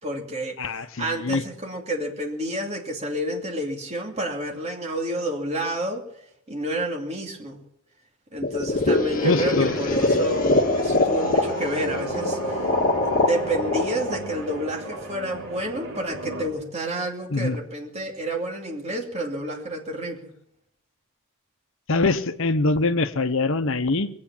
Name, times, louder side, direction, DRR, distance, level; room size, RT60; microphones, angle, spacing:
voice 1, 0.0-6.0 6.5-7.6 8.3-12.6 13.0-20.3, right 1 dB, 30° right, 2.6 m, -29 dB
voice 2, 0.6-1.4 9.2-9.7 17.3-17.6 21.9-24.1, left 3 dB, 60° left, 1.0 m, -23 dB
sound 1, 8.4-15.3, left 2 dB, 40° left, 1.7 m, -24 dB
sound 2, 9.4-16.5, right 1 dB, 60° right, 3.1 m, -33 dB
21.5 x 8.6 x 7.3 m
head